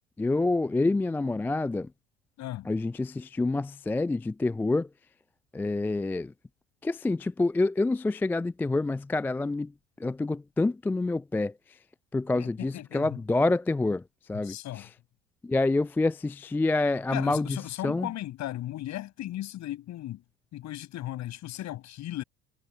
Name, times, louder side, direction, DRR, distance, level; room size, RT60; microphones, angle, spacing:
voice 1, 0.2-1.9 2.7-4.9 5.5-6.3 6.8-9.7 10.0-11.5 12.1-14.0 14.3-14.8 15.4-17.6 17.8-18.1, left 2 dB, 5° left, 0.4 m, -27 dB
voice 2, 2.4-2.7 12.3-13.2 14.3-14.9 17.1-20.2 20.5-22.2, left 14 dB, 45° left, 6.0 m, -36 dB
figure-of-eight pair, 65°, 37 cm